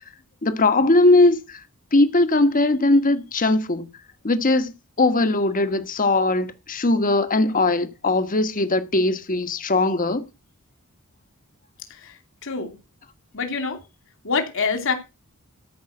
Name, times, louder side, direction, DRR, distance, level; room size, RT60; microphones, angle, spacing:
voice 1, 0.4-1.6 1.9-3.9 4.2-4.7 5.0-10.2, left 2 dB, 40° left, 1.3 m, -19 dB
voice 2, 11.9-12.8 13.3-13.8 14.2-14.9, left 5 dB, 65° left, 2.9 m, -26 dB
13.5 x 5.5 x 7.8 m
head